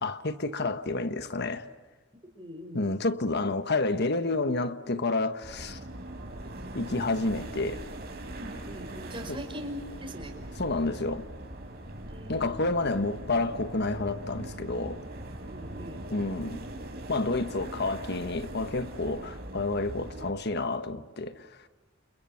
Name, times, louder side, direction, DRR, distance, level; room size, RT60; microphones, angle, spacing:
voice 1, 0.0-1.7 2.7-5.8 6.7-7.8 9.3-9.4 10.6-11.3 12.3-15.0 16.1-16.6 17.1-21.5, left 2 dB, 55° left, 1.5 m, -29 dB
voice 2, 2.4-2.8 8.4-10.3 12.0-12.5 15.5-16.0, equal, 25° right, 5.4 m, -41 dB
sound 1, 5.4-20.3, right 1 dB, 50° right, 5.8 m, -41 dB
29.5 x 29.5 x 6.0 m
head